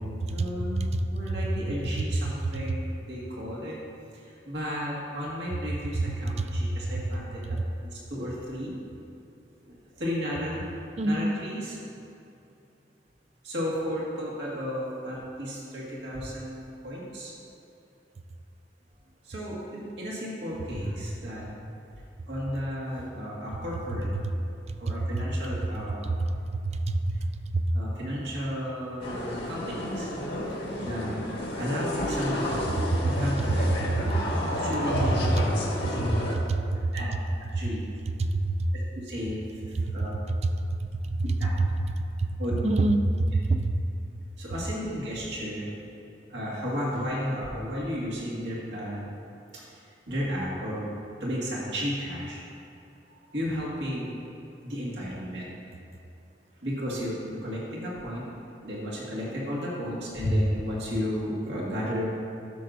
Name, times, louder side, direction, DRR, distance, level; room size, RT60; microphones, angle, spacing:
voice 1, 0.0-3.8 4.1-7.6 7.9-8.7 9.7-10.7 11.0-11.8 13.4-17.3 19.2-21.5 22.3-24.1 24.8-26.1 27.7-30.1 30.8-31.2 31.6-32.8 33.0-33.7 34.6-35.5 36.0-36.1 36.9-37.1 37.5-37.8 39.0-40.1 41.4-41.5 42.4-42.9 44.4-45.7 46.3-49.1 49.5-49.6 50.1-50.9 51.2-52.4 53.1-54.3 54.6-55.5 56.6-58.3 58.6-62.1, equal, 80° right, -6 dB, 1.9 m, -33 dB
voice 2, 6.0-6.5 7.5-7.6 11.0-11.4 24.9-25.0 26.0-26.2 26.6-27.3 27.5-27.6 32.7-33.1 34.0-34.3 35.4-35.5 36.5-36.9 37.5-37.6 38.2-38.7 40.4-40.8 41.0-41.5 42.2-42.3 42.6-43.8, right 2 dB, 40° right, 8 dB, 0.4 m, -26 dB
sound 1, 29.0-36.4, left 1 dB, 80° left, 1.6 m, -31 dB
13.0 x 6.3 x 2.6 m, 2.7 s
head